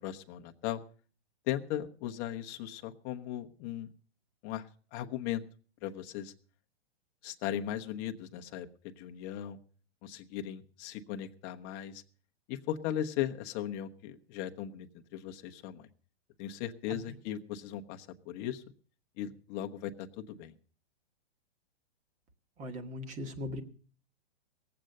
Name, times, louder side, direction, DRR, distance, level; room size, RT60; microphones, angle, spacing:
voice 1, 0.0-0.8 1.5-3.9 4.4-5.4 5.8-6.3 7.2-9.6 10.0-12.0 12.5-15.9 16.4-18.6 19.2-20.5, left 11 dB, 30° left, 5 dB, 0.9 m, -38 dB
voice 2, 22.6-23.6, left 1 dB, 20° right, 8 dB, 1.4 m, -39 dB
18.5 x 7.8 x 6.5 m, 0.42 s
hypercardioid pair, 145°, 33 cm